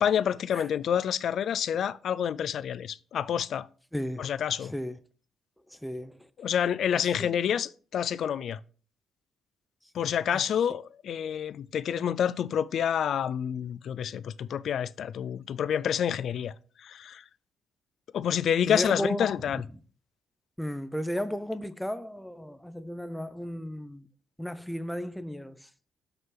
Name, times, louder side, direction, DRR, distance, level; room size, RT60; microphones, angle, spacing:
voice 1, 0.0-3.7 4.2-4.7 6.4-8.6 9.9-16.5 16.8-17.2 18.1-19.6, left 9 dB, 65° left, 0.3 m, -28 dB
voice 2, 3.9-4.3 4.6-5.0 5.7-6.3 7.2-7.4 9.9-10.4 18.7-19.8 20.6-24.1 24.4-25.7, equal, 5° left, 0.5 m, -35 dB
5.9 x 5.5 x 3.7 m
cardioid pair, 90°, 0 cm